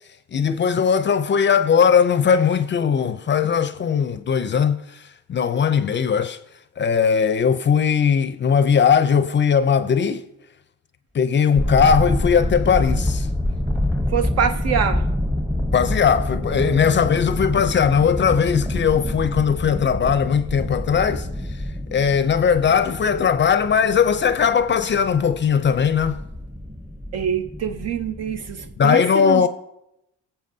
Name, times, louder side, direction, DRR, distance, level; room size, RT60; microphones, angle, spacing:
voice 1, 0.3-4.8 5.3-6.4 6.8-10.2 11.1-13.3 15.7-21.3 21.9-26.2 28.8-29.5, left 7 dB, 40° left, 0.5 m, -19 dB
sound 1, 11.5-28.8, left 1 dB, 5° right, 0.8 m, -27 dB
voice 2, 14.1-15.0 27.1-29.4, right 8 dB, 55° right, 0.5 m, -24 dB
21.0 x 7.1 x 2.7 m
cardioid pair, 90°, 30 cm